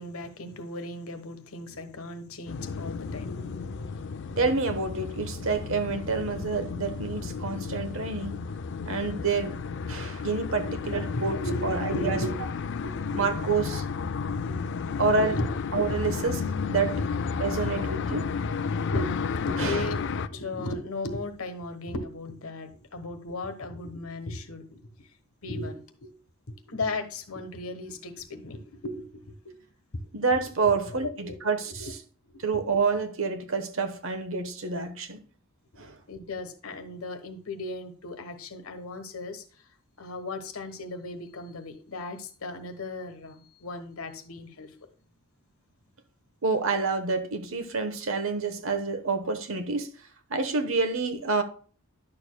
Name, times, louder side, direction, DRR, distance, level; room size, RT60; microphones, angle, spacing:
voice 1, 0.0-3.9 10.6-12.3 12.6-13.2 14.3-15.5 15.8-16.2 16.9-17.0 18.7-25.1 25.4-26.1 26.5-29.6 30.6-31.4 31.8-31.9 32.3-32.4 36.1-39.4 40.0-44.7, left 2 dB, 75° left, 1.2 m, -36 dB
sound 1, 2.5-20.3, left 5 dB, 55° left, 0.4 m, -32 dB
voice 2, 4.4-8.3 8.8-9.6 9.9-11.4 11.6-12.2 13.1-13.8 15.0-15.4 15.7-16.9 17.4-18.3 19.6-19.8 30.1-31.9 32.4-35.2 35.8-36.0 46.4-49.9 50.3-51.4, right 4 dB, 65° right, 1.1 m, -28 dB
10.5 x 6.7 x 2.2 m
head